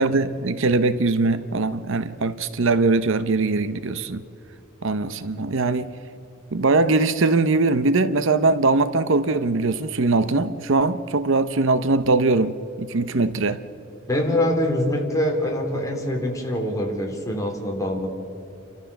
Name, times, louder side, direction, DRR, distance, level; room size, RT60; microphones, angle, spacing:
voice 1, 0.0-4.2 4.8-5.9 6.5-13.6, right 3 dB, 65° right, 0.8 m, -21 dB
voice 2, 14.1-18.1, left 1 dB, 15° left, 3.6 m, -24 dB
30.0 x 13.5 x 7.1 m
head